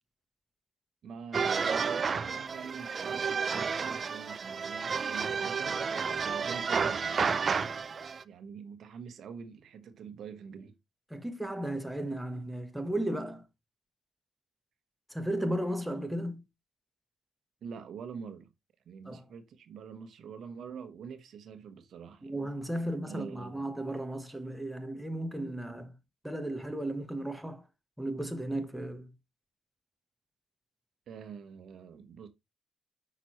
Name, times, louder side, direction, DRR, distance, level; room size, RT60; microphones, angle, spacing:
voice 1, 1.0-7.7 8.2-10.8 17.6-18.5 18.8-22.5 23.1-23.6 31.1-32.3, right 6 dB, 65° right, 1.1 m, -45 dB
sound 1, 1.3-8.2, right 5 dB, 40° right, 0.4 m, -31 dB
voice 2, 11.1-13.5 15.1-16.4 19.0-19.2 22.2-25.9 26.2-27.7 28.0-29.1, right 1 dB, 5° right, 1.1 m, -35 dB
6.0 x 5.9 x 3.0 m
cardioid pair, 90°, 0 cm